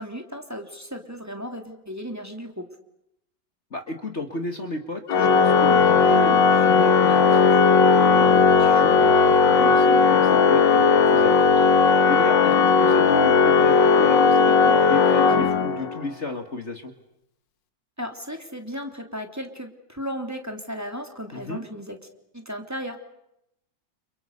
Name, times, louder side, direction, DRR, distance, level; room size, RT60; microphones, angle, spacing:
voice 1, 0.0-2.6 18.0-22.0 22.3-23.0, equal, 10° right, 4 dB, 3.3 m, -35 dB
voice 2, 3.7-16.9 21.3-21.6, left 2 dB, 40° left, 6 dB, 2.3 m, -33 dB
Organ, 5.1-16.0, left 5 dB, 80° left, 2.2 m, -17 dB
30.0 x 29.0 x 6.8 m, 0.83 s
omnidirectional pair, 1.9 m